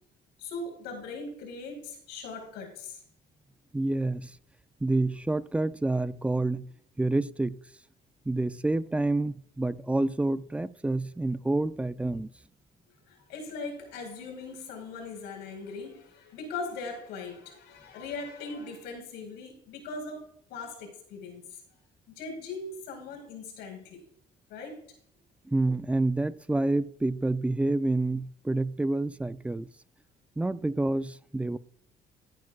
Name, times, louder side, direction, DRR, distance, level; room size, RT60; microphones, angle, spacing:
voice 1, 0.4-3.0 13.1-21.6 22.2-24.0 24.5-24.8, left 3 dB, 90° left, 4.6 m, -40 dB
voice 2, 3.7-4.3 4.8-6.7 7.0-7.6 8.3-12.3 25.5-29.7 30.4-31.6, right 2 dB, 5° right, 0.4 m, -28 dB
15.5 x 9.5 x 2.4 m
cardioid pair, 110°, 17 cm